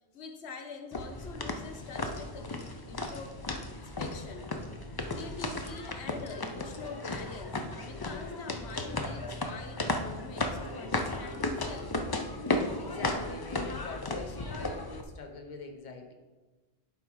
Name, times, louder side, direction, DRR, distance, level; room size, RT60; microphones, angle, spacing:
voice 1, 0.1-3.4 3.8-4.5 5.1-11.9, left 4 dB, 90° left, 5 dB, 1.1 m, -45 dB
sound 1, 0.9-15.0, left 2 dB, 30° left, 0.4 m, -35 dB
voice 2, 12.5-16.1, left 3 dB, 45° left, 3 dB, 1.0 m, -45 dB
11.0 x 3.8 x 4.7 m, 1.2 s
omnidirectional pair, 1.1 m